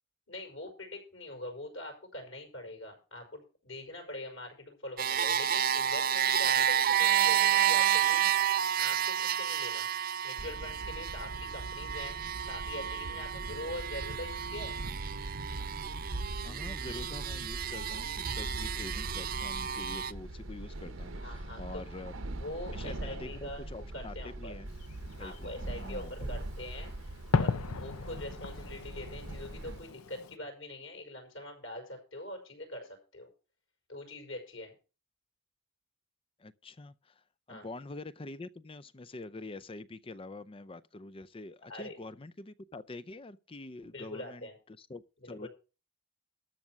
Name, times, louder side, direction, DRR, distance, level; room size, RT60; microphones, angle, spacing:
voice 1, 0.3-8.2 8.8-9.9 10.2-12.2 12.5-14.8 21.1-21.8 22.4-24.5 25.2-33.3 33.9-34.7 37.5-37.7 41.7-42.0 43.8-44.5 45.2-45.5, left 1 dB, 60° left, 5.4 m, -43 dB
sound 1, 5.0-20.1, right 10 dB, 40° right, 0.4 m, -30 dB
sound 2, 10.4-29.8, right 1 dB, 60° right, 1.0 m, -41 dB
voice 2, 16.4-22.1 22.7-24.7 25.2-26.3 36.4-45.5, left 2 dB, 25° left, 0.5 m, -46 dB
Fireworks, 24.7-30.4, left 4 dB, 80° left, 0.7 m, -37 dB
13.0 x 6.3 x 6.0 m
head